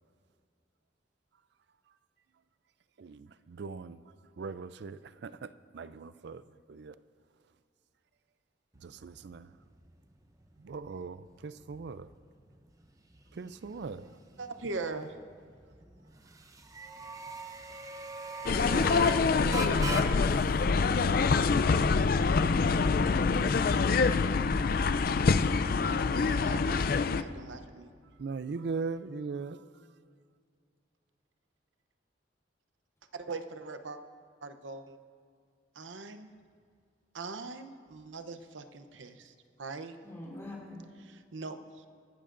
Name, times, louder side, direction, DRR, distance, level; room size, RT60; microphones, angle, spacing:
voice 1, 3.0-4.0 4.4-7.0 8.8-9.6 10.6-12.1 13.3-14.2 28.2-29.6, right 4 dB, 60° right, 0.4 m, -40 dB
sound 1, 8.7-25.9, right 2 dB, 20° right, 0.6 m, -45 dB
voice 2, 14.4-15.1 25.8-26.0 26.3-27.9 33.1-34.0 34.4-35.0 35.8-36.3 37.1-39.3 39.6-40.0 41.0-41.6, right 3 dB, 85° right, 0.8 m, -41 dB
sound 2, 18.5-27.2, left 4 dB, 50° left, 0.4 m, -25 dB
voice 3, 19.6-20.5 40.0-40.8, left 1 dB, 15° left, 3.4 m, -43 dB
25.0 x 12.0 x 2.6 m
head